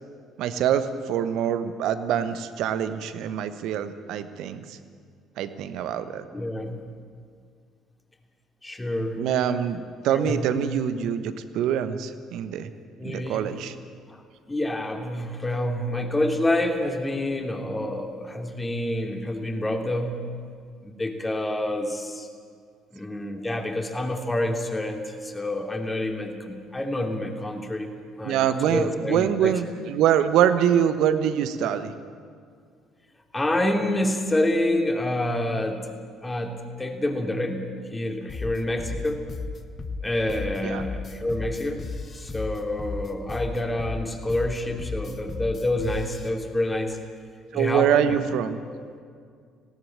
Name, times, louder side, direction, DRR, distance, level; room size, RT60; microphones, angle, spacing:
voice 1, 0.4-4.8 5.4-6.2 9.2-12.7 13.0-13.7 28.2-31.9 40.6-40.8 47.5-48.6, right 9 dB, 60° right, 11 dB, 1.2 m, -24 dB
voice 2, 6.3-6.8 8.6-9.2 10.1-10.5 13.0-13.6 14.1-14.2 14.5-20.2 20.8-22.3 22.9-29.5 33.3-35.9 36.2-37.7 37.9-39.2 40.0-41.9 42.2-47.0 47.5-48.2 48.7-48.8, left 1 dB, 15° left, 4 dB, 3.0 m, -28 dB
sound 1, 38.3-46.3, left 4 dB, 40° left, 1.7 m, -34 dB
19.5 x 17.5 x 8.9 m, 2.1 s
figure-of-eight pair, 50°, 0 cm